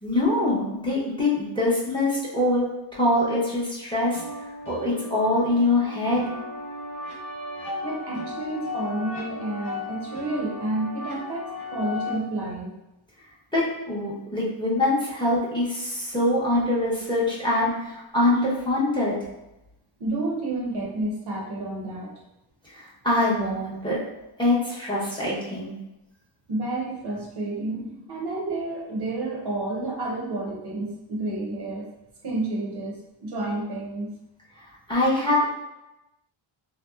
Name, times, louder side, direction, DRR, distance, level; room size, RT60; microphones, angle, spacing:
voice 1, 0.0-4.2 4.7-6.3 13.5-19.3 22.6-24.0 24.4-25.8 34.6-35.5, left 1 dB, 10° left, -7 dB, 0.7 m, -24 dB
sound 1, 4.1-12.1, left 3 dB, 40° left, 0.9 m, -36 dB
voice 2, 7.8-12.7 20.0-22.1 26.5-31.9 32.2-34.1, right 2 dB, 55° right, -2 dB, 0.7 m, -30 dB
2.8 x 2.0 x 2.2 m, 0.93 s
cardioid pair, 90°, 48 cm